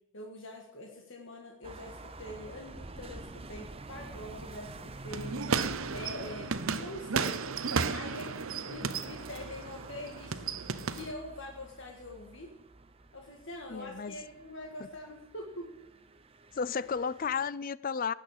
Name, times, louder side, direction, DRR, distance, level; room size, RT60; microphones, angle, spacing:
voice 1, 0.1-7.4 7.9-10.5 10.9-12.5 13.1-15.7, left 1 dB, 60° left, 1.9 m, -44 dB
sound 1, 1.6-17.5, right 2 dB, 25° right, 0.8 m, -48 dB
sound 2, 5.1-11.1, right 5 dB, 70° right, 0.8 m, -34 dB
voice 2, 13.7-14.2 16.5-18.1, left 6 dB, 40° left, 0.4 m, -33 dB
18.0 x 6.4 x 8.5 m
head